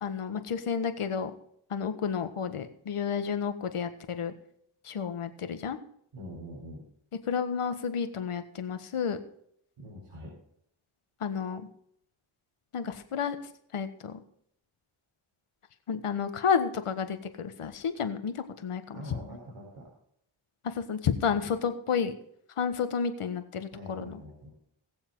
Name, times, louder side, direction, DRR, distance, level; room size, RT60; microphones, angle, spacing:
voice 1, 0.0-1.3 1.7-4.3 4.8-5.8 7.3-9.2 11.2-11.7 12.7-13.4 13.7-14.2 15.9-18.9 20.6-22.1 22.6-24.2, left 6 dB, 85° left, 9 dB, 1.6 m, -31 dB
voice 2, 6.1-6.8 9.8-10.3 18.9-19.9 21.3-21.5 23.7-24.5, equal, 85° right, -3 dB, 4.4 m, -44 dB
21.5 x 7.3 x 3.9 m, 0.70 s
cardioid pair, 55°, 50 cm